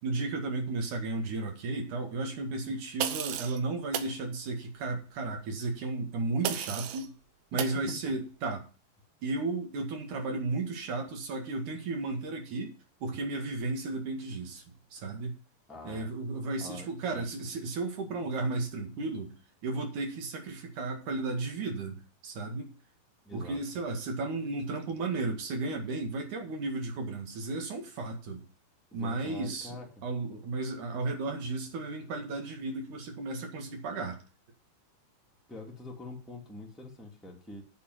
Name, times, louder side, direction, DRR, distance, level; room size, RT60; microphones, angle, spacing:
voice 1, 0.0-7.1 7.5-8.6 9.2-12.7 13.0-14.6 14.9-15.3 15.8-19.3 19.6-22.0 22.2-22.7 23.3-28.4 28.9-29.8 30.0-34.2, right 3 dB, 55° right, 3 dB, 2.9 m, -34 dB
sound 1, 3.0-3.6 3.9-4.1 6.4-7.1 7.6-7.8, right 11 dB, 75° right, 2.9 m, -33 dB
voice 2, 7.5-8.1 15.7-16.1 16.6-16.9 17.1-17.3 23.2-23.6 28.9-30.0 35.5-37.6, left 1 dB, ahead, -1 dB, 1.2 m, -44 dB
8.5 x 6.9 x 7.9 m, 0.36 s
omnidirectional pair, 5.1 m